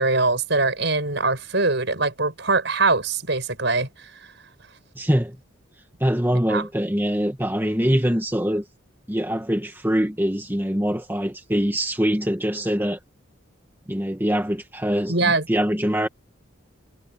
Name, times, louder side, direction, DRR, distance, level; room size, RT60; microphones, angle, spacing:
voice 1, 0.0-4.1 6.5-6.6 15.1-15.5, right 3 dB, 60° right, 6.7 m, -22 dB
voice 2, 5.0-5.4 6.0-8.7 9.1-13.0 13.9-16.1, equal, 10° right, 1.8 m, -23 dB
head